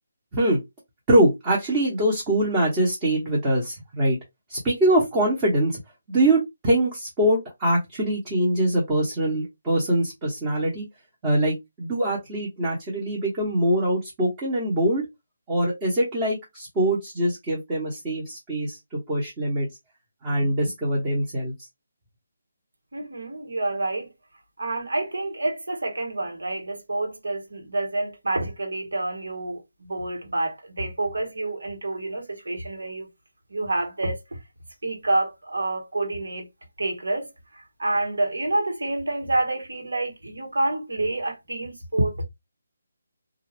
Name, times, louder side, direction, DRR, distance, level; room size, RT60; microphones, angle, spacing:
voice 1, 1.1-4.2 4.5-5.8 6.1-10.9 11.2-15.0 15.5-19.7 20.2-21.5, right 1 dB, 20° right, 1.1 m, -23 dB
voice 2, 22.9-24.1 24.6-33.1 33.5-34.4 34.8-36.5 36.8-42.2, right 2 dB, 80° right, 1.3 m, -28 dB
2.4 x 2.2 x 3.4 m
figure-of-eight pair, 160°, 0 cm